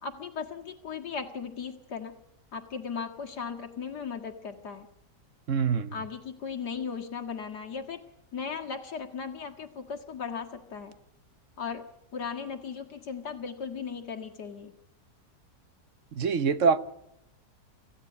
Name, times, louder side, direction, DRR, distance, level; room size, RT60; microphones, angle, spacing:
voice 1, 0.0-2.1 2.5-4.9 5.9-8.0 8.3-10.9 11.6-11.9 12.1-14.7, left 6 dB, 70° left, 2.3 m, -37 dB
voice 2, 5.5-5.9 16.1-16.8, right 5 dB, 50° right, 1.3 m, -24 dB
25.5 x 16.0 x 9.6 m
omnidirectional pair, 1.8 m